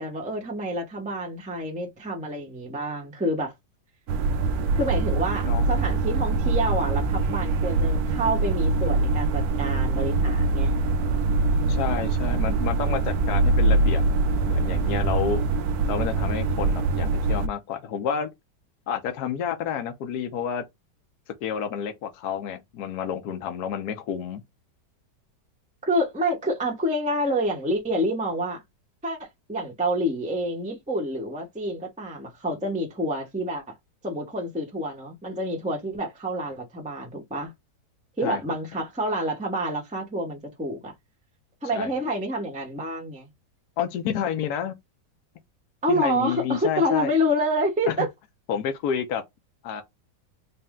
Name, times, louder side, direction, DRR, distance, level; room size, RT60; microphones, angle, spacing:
voice 1, 0.0-3.5 4.7-10.7 25.8-28.6 29.0-33.7 34.0-37.5 38.2-40.9 41.6-43.3 45.8-48.1, equal, 5° right, 0.7 m, -28 dB
sound 1, 4.1-17.5, right 3 dB, 70° right, 1.0 m, -23 dB
voice 2, 11.7-14.0 14.5-15.4 15.9-18.3 18.9-20.7 21.4-24.4 38.2-38.4 41.7-41.9 43.8-44.7 45.9-47.1 47.9-48.0 48.5-49.2 49.6-49.8, left 8 dB, 70° left, 1.2 m, -29 dB
4.2 x 2.1 x 3.5 m
omnidirectional pair, 1.8 m